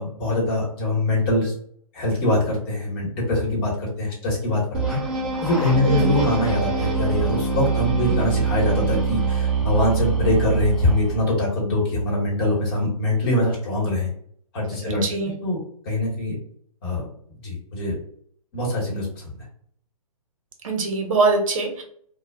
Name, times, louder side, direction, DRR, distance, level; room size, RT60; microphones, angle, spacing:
voice 1, 0.0-1.5 1.9-5.0 5.4-14.1 14.5-15.0 15.4-16.4 16.8-17.0 17.4-18.0 18.5-19.3, left 1 dB, 35° left, -3 dB, 1.0 m, -23 dB
sound 1, 4.7-11.3, right 5 dB, 5° right, 0.3 m, -24 dB
voice 2, 5.8-6.1 14.8-15.3 20.6-21.8, right 3 dB, 60° right, 3 dB, 0.7 m, -23 dB
2.2 x 2.1 x 3.3 m, 0.62 s
hypercardioid pair, 140°, 19 cm